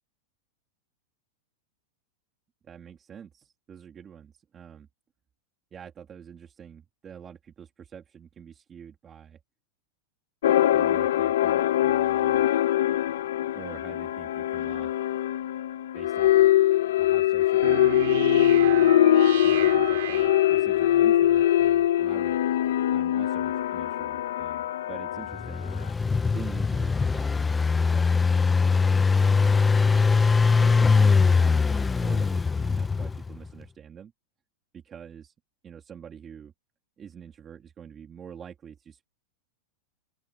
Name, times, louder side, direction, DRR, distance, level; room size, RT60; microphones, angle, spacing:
voice 1, 2.6-4.9 5.7-9.4 10.7-12.5 13.5-14.9 15.9-16.5 17.0-18.1 18.5-19.0 19.4-22.4 22.9-30.2 30.6-34.1 34.7-35.3 35.6-36.5 37.0-39.0, right 8 dB, 20° right, 2.5 m, -46 dB
sound 1, 10.4-25.7, left 12 dB, 80° left, 0.8 m, -22 dB
sound 2, 17.6-20.9, right 15 dB, 65° right, 3.9 m, -33 dB
Engine, 25.3-33.4, left 4 dB, 10° left, 0.5 m, -22 dB
open air
supercardioid pair, 165°, 0 cm